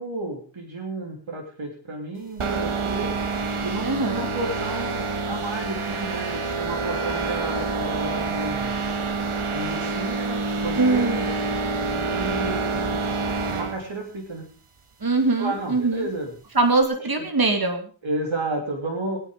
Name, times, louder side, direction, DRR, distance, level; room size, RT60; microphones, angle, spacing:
voice 1, 0.0-3.1 3.6-8.7 9.5-11.2 11.9-12.9 13.5-14.5 15.4-16.4 18.0-19.2, right 2 dB, 70° right, 1 dB, 3.3 m, -32 dB
sound 1, 2.4-13.8, right 3 dB, 85° right, 1.8 m, -27 dB
voice 2, 3.8-4.3 10.8-11.3 15.0-16.1 16.5-17.9, right 3 dB, 45° right, 5 dB, 2.5 m, -22 dB
22.0 x 9.8 x 5.2 m, 0.39 s
wide cardioid pair, 60°, 48 cm